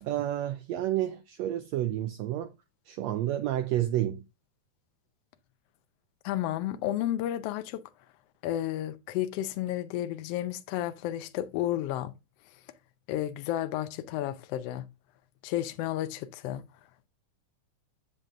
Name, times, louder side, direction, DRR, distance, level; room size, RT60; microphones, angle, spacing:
voice 1, 0.0-2.5 2.9-4.2, right 13 dB, 85° right, 1.5 m, -30 dB
voice 2, 6.2-7.8 8.4-12.1 13.1-14.9 15.4-16.6, left 13 dB, 85° left, 1.4 m, -32 dB
7.4 x 6.7 x 2.4 m
omnidirectional pair, 3.6 m